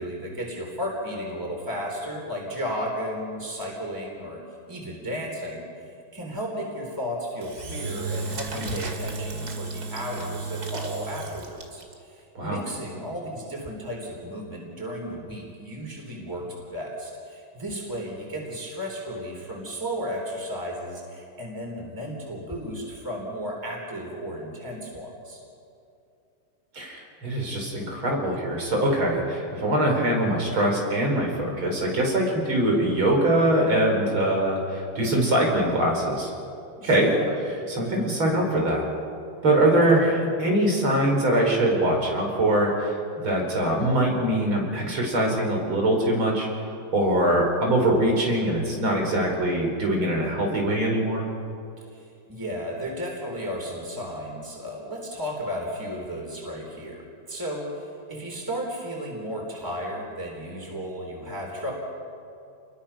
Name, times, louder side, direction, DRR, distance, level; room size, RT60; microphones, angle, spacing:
voice 1, 0.0-4.4 4.7-5.7 6.1-11.8 12.1-25.4 36.8-37.4 39.7-40.1 51.9-52.0 52.3-57.7 58.1-61.7, equal, 10° right, -2 dB, 4.1 m, -34 dB
Engine / Drill, 7.4-11.9, right 3 dB, 50° right, 2.7 m, -33 dB
voice 2, 26.7-36.3 36.8-37.1 37.7-38.8 39.4-46.5 46.9-51.3, right 1 dB, 80° right, 0 dB, 5.8 m, -23 dB
30.0 x 22.0 x 5.9 m, 2.6 s
omnidirectional pair, 2.2 m